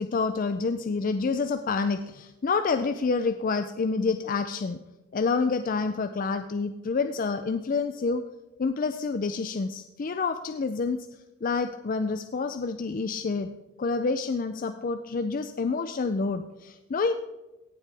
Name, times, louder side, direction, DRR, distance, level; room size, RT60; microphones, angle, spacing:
voice 1, 0.0-4.8 5.1-8.2 8.6-11.0 11.4-13.5 13.8-17.1, left 4 dB, 40° left, 9 dB, 0.4 m, -28 dB
16.5 x 7.5 x 3.4 m, 1.0 s
head